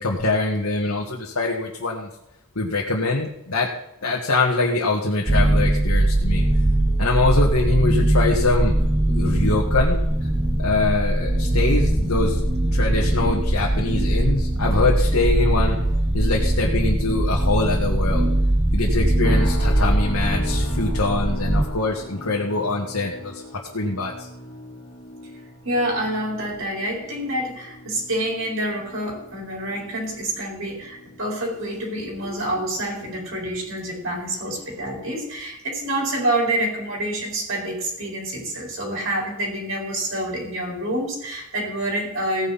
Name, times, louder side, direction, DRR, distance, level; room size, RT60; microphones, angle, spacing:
voice 1, 0.0-2.1 2.6-3.7 4.0-6.5 7.0-8.7 9.1-10.0 10.6-12.4 12.7-15.8 16.1-18.3 18.7-23.4 23.7-24.3, left 3 dB, 90° left, -2 dB, 1.8 m, -23 dB
sound 1, 5.3-21.6, right 1 dB, 25° right, 1.0 m, -21 dB
sound 2, 19.2-34.4 34.8-35.2 35.7-35.9, left 1 dB, 45° left, 2.6 m, -40 dB
voice 2, 25.6-42.5, right 1 dB, 70° right, -2 dB, 4.5 m, -27 dB
17.0 x 9.4 x 4.2 m, 0.86 s
head